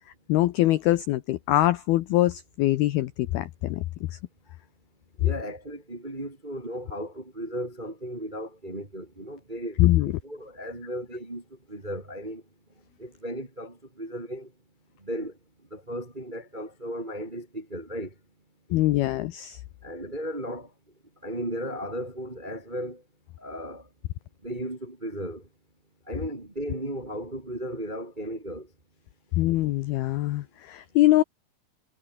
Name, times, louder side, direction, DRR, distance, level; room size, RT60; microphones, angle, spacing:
voice 1, 0.3-3.8 9.8-10.1 18.7-19.6 29.4-31.2, left 16 dB, 90° left, 2.1 m, -23 dB
voice 2, 5.2-11.4 11.7-12.4 13.0-14.5 15.0-15.3 15.7-18.1 19.8-20.7 21.2-23.0 23.4-23.8 24.4-25.4 26.1-28.7, equal, 25° right, 1.1 m, -35 dB
omnidirectional pair, 5.7 m